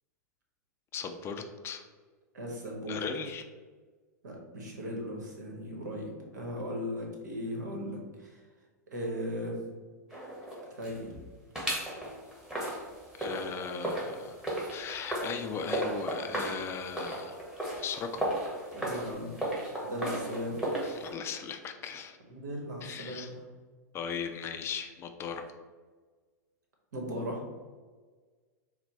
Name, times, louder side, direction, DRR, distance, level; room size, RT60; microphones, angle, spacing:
voice 1, 0.9-1.8 2.9-3.4 13.2-14.4 14.7-17.4 17.8-18.3 20.8-22.2 22.8-23.3 23.9-25.5, left 6 dB, 25° left, 6 dB, 0.4 m, -38 dB
voice 2, 2.3-3.0 4.2-8.4 8.9-9.6 10.7-11.1 18.7-19.3 19.8-20.6 22.3-23.4 26.9-27.4, equal, 75° right, 0 dB, 1.2 m, -37 dB
sound 1, 10.1-11.2 11.6-21.1, right 1 dB, 5° right, 1.2 m, -36 dB
4.3 x 2.2 x 4.1 m, 1.4 s
hypercardioid pair, 100°, 9 cm